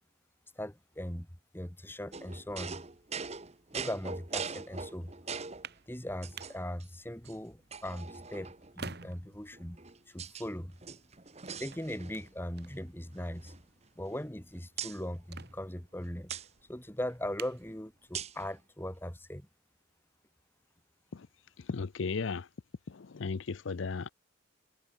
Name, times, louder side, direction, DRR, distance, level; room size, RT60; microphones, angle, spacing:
voice 1, 0.6-1.3 1.5-2.8 3.7-5.1 5.9-9.8 10.1-10.8 11.6-13.5 14.0-16.3 16.7-19.5, left 1 dB, 10° left, 2.0 m, -39 dB
sound 1, 2.1-5.7 6.2-6.8 7.2-7.3 7.7-8.8 9.5-10.5 10.8-12.3 12.6-12.8 13.1-14.4 14.8-15.0 16.3-16.5 18.1-18.5, right 6 dB, 30° right, 1.3 m, -42 dB
sound 2, 5.3-18.4, right 5 dB, 50° right, 1.7 m, -53 dB
voice 2, 21.6-22.5 22.9-24.1, left 4 dB, 70° left, 0.5 m, -35 dB
head